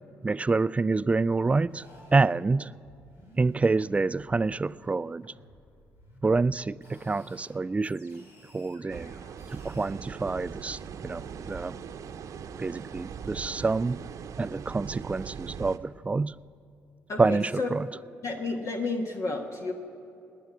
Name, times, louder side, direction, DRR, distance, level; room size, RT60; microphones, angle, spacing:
voice 1, 0.2-1.8 2.1-2.7 3.4-5.3 6.2-8.2 8.5-9.1 9.5-11.8 12.6-14.0 14.4-16.3 17.2-17.5 17.7-17.9, right 3 dB, 20° right, 0.3 m, -27 dB
sound 1, 1.5-4.9 5.2-7.5 7.8-9.9, left 1 dB, 90° left, 2.9 m, -55 dB
sound 2, 8.9-15.8, right 7 dB, 60° right, 0.8 m, -40 dB
voice 2, 17.1-17.7 18.2-19.7, left 3 dB, 55° left, 1.4 m, -31 dB
18.0 x 10.0 x 7.6 m
hypercardioid pair, 55°, 6 cm